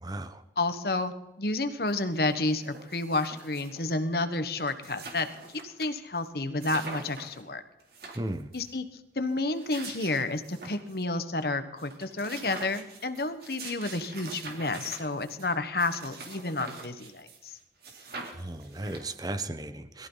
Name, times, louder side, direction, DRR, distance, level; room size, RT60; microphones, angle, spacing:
voice 1, 0.0-0.4 8.2-8.5 18.4-20.1, right 1 dB, 20° right, 10 dB, 1.0 m, -35 dB
voice 2, 0.6-5.3 5.6-7.6 8.5-8.8 9.1-17.5, left 2 dB, 55° left, 10 dB, 1.4 m, -30 dB
sound 1, 1.9-2.0 2.2-3.9 4.3-4.4 4.6-5.9 6.2-6.3 6.6-7.4 7.8-8.7 9.4-11.0 11.4-11.5 11.8-17.5 17.8-19.3, right 3 dB, 60° right, 3.4 m, -44 dB
22.0 x 14.5 x 4.1 m, 0.94 s
head